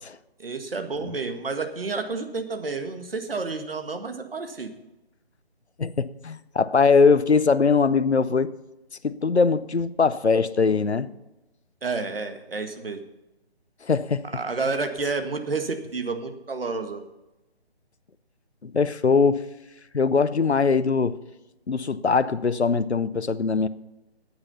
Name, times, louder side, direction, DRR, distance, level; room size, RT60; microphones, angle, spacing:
voice 1, 0.4-4.7 11.8-13.0 14.3-17.0, right 4 dB, 60° right, 1.7 m, -30 dB
voice 2, 5.8-8.5 9.0-11.1 13.8-14.2 18.6-19.4 19.9-21.2 21.7-23.7, left 5 dB, 90° left, 0.7 m, -21 dB
9.7 x 8.8 x 6.9 m
figure-of-eight pair, 150°, 32 cm